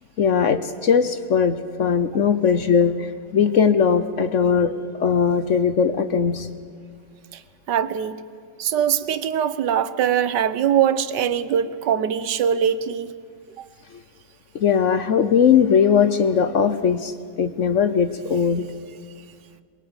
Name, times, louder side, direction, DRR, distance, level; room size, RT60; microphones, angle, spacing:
voice 1, 0.2-6.5 14.5-18.7, left 7 dB, 55° left, 12 dB, 1.0 m, -19 dB
voice 2, 7.7-8.2 8.6-13.1, right 9 dB, 80° right, 14 dB, 1.5 m, -22 dB
22.5 x 22.0 x 8.9 m, 2.1 s
omnidirectional pair, 1.8 m